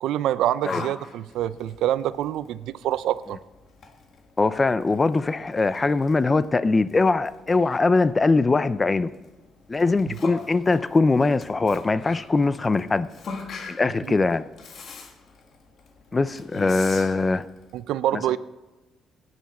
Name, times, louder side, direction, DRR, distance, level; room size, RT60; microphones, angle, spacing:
voice 1, 0.0-3.4 10.1-10.2 14.0-14.2 17.7-18.4, right 12 dB, 85° right, 0.4 m, -26 dB
Yell, 0.6-17.8, left 4 dB, 60° left, 1.7 m, -42 dB
voice 2, 4.4-9.1 9.7-13.1 13.7-14.5 16.1-17.5 18.1-18.2, left 3 dB, 25° left, 0.5 m, -21 dB
16.0 x 9.7 x 4.3 m
cardioid pair, 90°, 0 cm